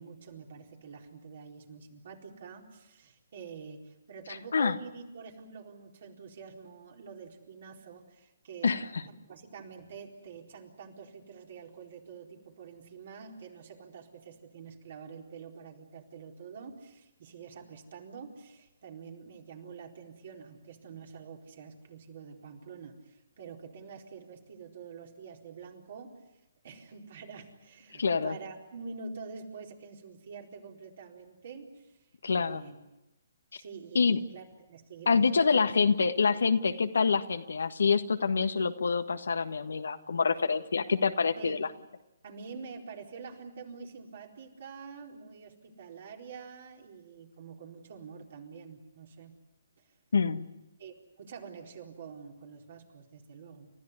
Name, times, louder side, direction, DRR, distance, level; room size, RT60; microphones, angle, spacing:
voice 1, 0.0-8.7 9.3-26.1 26.6-31.9 32.3-32.8 33.5-35.5 41.4-41.5 42.2-49.3 49.8-49.9 50.8-53.7, right 5 dB, 55° right, 1 dB, 4.2 m, -47 dB
voice 2, 8.6-9.0 27.9-28.3 32.2-32.6 33.9-34.2 35.1-41.7 50.1-50.5, left 5 dB, 70° left, 9 dB, 1.5 m, -26 dB
30.0 x 14.5 x 9.7 m, 0.99 s
figure-of-eight pair, 135°, 0 cm